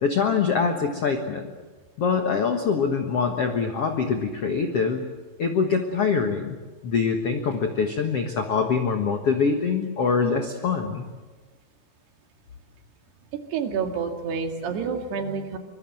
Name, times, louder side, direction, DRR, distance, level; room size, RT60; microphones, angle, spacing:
voice 1, 0.0-1.5 2.0-5.1 5.4-6.6 6.8-11.0, left 5 dB, 65° left, 5 dB, 1.5 m, -24 dB
voice 2, 13.5-15.6, right 6 dB, 70° right, 5 dB, 4.1 m, -28 dB
24.5 x 23.0 x 7.7 m, 1.3 s
omnidirectional pair, 4.9 m